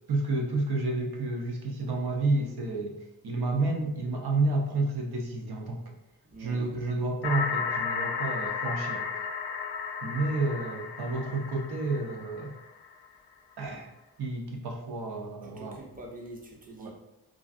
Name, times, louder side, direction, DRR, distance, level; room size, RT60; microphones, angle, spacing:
voice 1, 0.1-3.0 3.2-5.9 6.4-9.1 10.0-12.5 13.6-13.9 14.2-15.8 16.8-16.9, right 2 dB, 65° right, 1 dB, 0.7 m, -30 dB
voice 2, 6.3-6.7 15.4-16.9, right 2 dB, 20° right, -1 dB, 0.7 m, -45 dB
sound 1, 7.2-12.9, left 6 dB, 70° left, 0.6 m, -34 dB
3.1 x 2.5 x 2.5 m, 0.93 s
wide cardioid pair, 80°, 41 cm